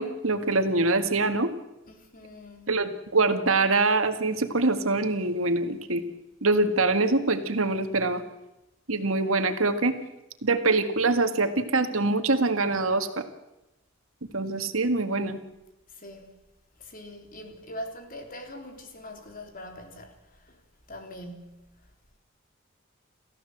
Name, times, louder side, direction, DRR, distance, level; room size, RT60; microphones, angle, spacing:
voice 1, 0.0-1.5 2.7-6.0 6.4-8.2 8.9-10.0 10.4-13.2 14.3-15.4, right 3 dB, 90° right, 1.9 m, -24 dB
voice 2, 1.9-2.7 15.9-16.3 16.8-20.6 20.9-21.7, left 1 dB, 45° left, 3.7 m, -42 dB
28.5 x 15.0 x 8.0 m
head